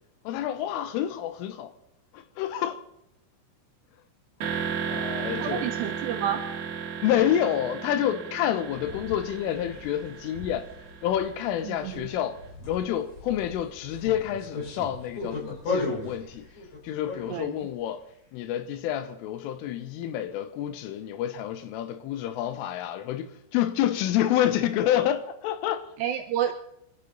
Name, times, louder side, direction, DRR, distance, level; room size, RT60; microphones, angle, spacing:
voice 1, 0.3-1.7 2.1-2.8 4.8-5.7 7.0-10.7 11.0-12.4 12.7-16.5 16.8-18.0 18.3-25.9, left 11 dB, 80° left, 3.5 m, -28 dB
sound 1, 4.4-12.2, right 6 dB, 55° right, 4.3 m, -35 dB
voice 2, 5.1-6.4 11.6-12.1 17.3-17.6 26.0-26.5, right 10 dB, 80° right, 2.5 m, -30 dB
sound 2, 8.6-17.6, left 3 dB, 35° left, 6.0 m, -37 dB
26.0 x 12.5 x 4.1 m
omnidirectional pair, 5.9 m